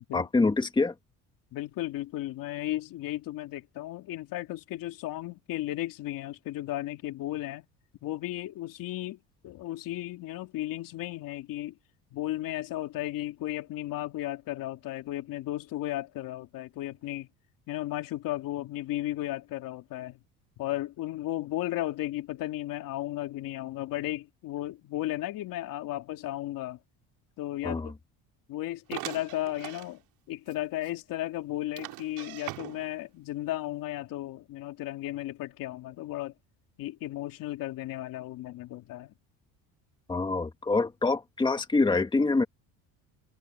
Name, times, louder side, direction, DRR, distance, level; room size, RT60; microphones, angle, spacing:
voice 1, 0.1-0.9 27.6-27.9 40.1-42.4, left 3 dB, 15° left, 1.9 m, -25 dB
voice 2, 1.5-7.6 8.0-11.8 12.1-17.3 17.7-20.2 20.6-26.8 27.4-27.9 28.5-30.0 30.3-36.3 36.8-39.1, left 15 dB, 65° left, 3.0 m, -35 dB
sound 1, 28.9-29.9 30.5-30.6 30.8-30.9 31.8-33.0, right 19 dB, 80° right, 5.5 m, -40 dB
cardioid pair, 135°, 36 cm